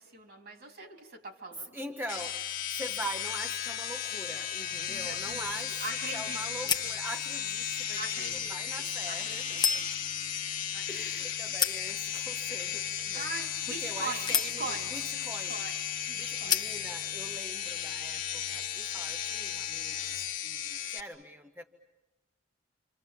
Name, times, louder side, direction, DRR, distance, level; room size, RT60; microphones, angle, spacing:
voice 1, 0.0-1.8 4.9-6.8 7.9-9.9 10.7-11.5 13.1-14.9 15.2-15.8 16.1-16.7, right 3 dB, 55° right, 4 dB, 3.3 m, -42 dB
voice 2, 1.7-9.8 10.9-13.3 13.7-15.5 16.1-21.6, right 1 dB, 10° right, 4 dB, 1.0 m, -43 dB
sound 1, 2.1-21.0, left 9 dB, 45° left, 1.5 m, -35 dB
sound 2, 4.7-17.4, left 6 dB, 20° left, 0.9 m, -37 dB
29.0 x 26.5 x 7.6 m, 1.1 s
head